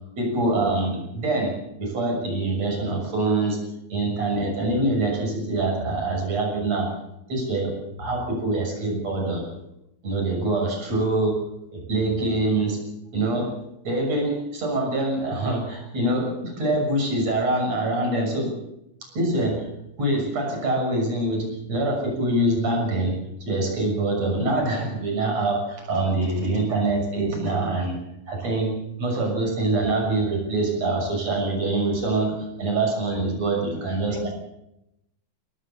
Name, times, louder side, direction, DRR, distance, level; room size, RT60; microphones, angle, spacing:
voice 1, 0.2-3.6 3.9-6.9 7.3-9.4 10.0-11.4 11.7-12.8 13.1-13.5 13.8-18.5 19.1-19.7 20.0-23.2 23.5-28.0 28.3-34.3, right 2 dB, 45° right, 1 dB, 7.6 m, -24 dB
voice 2, 33.5-34.3, left 1 dB, 70° left, 2 dB, 4.7 m, -38 dB
23.5 x 18.5 x 7.0 m, 0.86 s
omnidirectional pair, 4.2 m